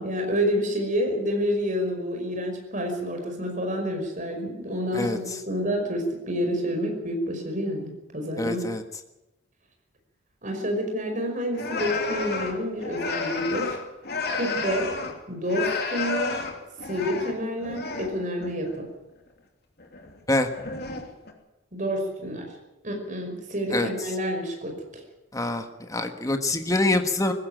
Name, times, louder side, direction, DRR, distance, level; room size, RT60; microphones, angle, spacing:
voice 1, 0.0-8.7 10.4-13.8 14.3-14.9 15.3-16.4 16.9-18.9 21.7-22.5 22.8-24.7, equal, 40° right, 3 dB, 5.5 m, -28 dB
voice 2, 4.9-5.4 8.4-8.8 20.3-20.5 23.7-23.9 25.3-27.3, left 2 dB, 15° left, 6 dB, 1.4 m, -25 dB
sound 1, 11.5-15.2 15.4-18.1 18.4-18.8 19.8-20.2 20.5-21.3, left 4 dB, 55° left, 2.9 m, -31 dB
20.0 x 15.5 x 9.0 m, 0.97 s
head